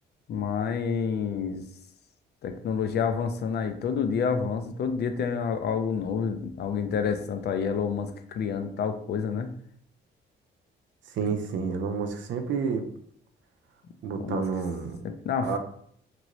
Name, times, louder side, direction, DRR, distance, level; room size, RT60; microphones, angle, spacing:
voice 1, 0.3-1.6 2.4-9.5 14.2-14.4 15.0-15.6, left 6 dB, 55° left, 8 dB, 0.4 m, -28 dB
voice 2, 11.1-12.9 14.0-15.0 15.4-15.6, right 5 dB, 70° right, 6 dB, 0.5 m, -29 dB
3.0 x 2.5 x 3.0 m, 0.64 s
cardioid pair, 90°, 20 cm